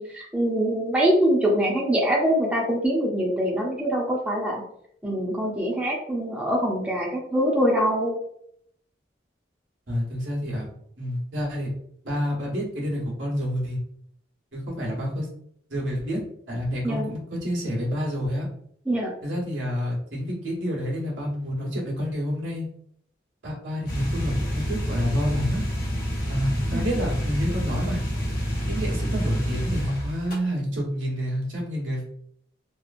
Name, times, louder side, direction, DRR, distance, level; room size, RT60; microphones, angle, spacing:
voice 1, 0.0-4.6 5.0-8.2 16.8-17.1 18.9-19.1 26.7-27.0, equal, 5° right, -3 dB, 0.5 m, -24 dB
voice 2, 9.9-10.7 11.0-11.7 12.0-13.8 14.5-15.3 15.7-16.2 16.5-18.5 19.2-22.7 23.4-25.6 26.3-28.0 28.7-32.0, equal, 85° right, -3 dB, 1.1 m, -28 dB
sound 1, 23.9-30.4, equal, 50° left, 0.8 m, -28 dB
2.9 x 2.4 x 2.4 m, 0.68 s
head